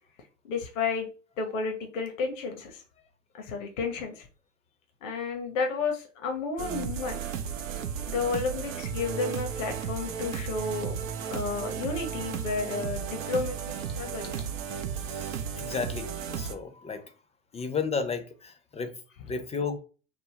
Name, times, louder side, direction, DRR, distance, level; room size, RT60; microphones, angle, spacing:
voice 1, 0.4-1.1 1.4-2.8 3.3-4.3 5.0-7.2 8.1-10.9 11.2-14.4, left 4 dB, 75° left, 0.8 m, -32 dB
sound 1, 6.6-16.5, right 7 dB, 80° right, 0.6 m, -34 dB
voice 2, 15.0-17.1 17.5-19.0 19.2-19.8, left 5 dB, 15° left, 0.5 m, -33 dB
3.6 x 2.0 x 2.8 m
hypercardioid pair, 75°, 39 cm